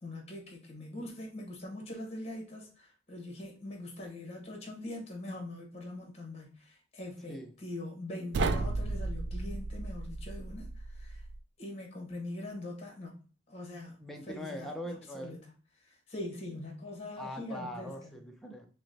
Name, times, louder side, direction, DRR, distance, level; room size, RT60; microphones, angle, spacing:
voice 1, 0.0-11.2 11.6-13.2 13.5-14.0 14.3-14.7 15.1-15.4 15.9-18.2, left 1 dB, 35° left, 1.1 m, -42 dB
sound 1, 8.3-11.4, right 3 dB, 60° right, 0.3 m, -34 dB
voice 2, 14.0-15.4 17.2-18.7, equal, ahead, 0.5 m, -42 dB
5.9 x 2.2 x 2.7 m
head